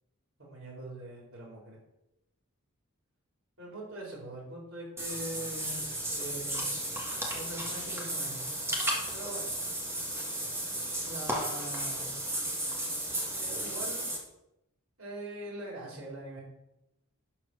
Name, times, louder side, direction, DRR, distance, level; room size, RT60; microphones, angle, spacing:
voice 1, 0.4-1.8 3.6-5.8 6.1-6.7 7.3-8.4 9.1-9.5 11.0-12.2 13.4-14.1 15.0-16.4, right 1 dB, 75° right, -4 dB, 4.2 m, -42 dB
Water / Bathtub (filling or washing), 5.0-14.2, right 1 dB, 10° right, 1.8 m, -34 dB
11.5 x 4.5 x 6.3 m, 0.89 s
head